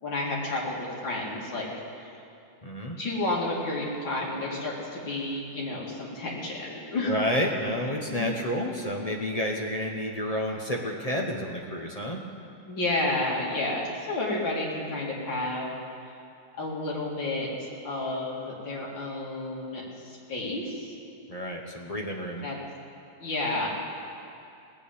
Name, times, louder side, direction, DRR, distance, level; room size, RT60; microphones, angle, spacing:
voice 1, 0.0-1.7 2.0-2.1 3.0-7.1 8.1-8.3 12.7-15.7 16.6-20.9 22.4-22.6 23.2-23.7, left 2 dB, 65° left, -4 dB, 3.1 m, -31 dB
voice 2, 2.6-3.0 7.0-12.2 21.3-22.4, left 1 dB, 30° left, 0 dB, 0.7 m, -30 dB
18.0 x 7.1 x 8.6 m, 2.5 s
omnidirectional pair, 2.2 m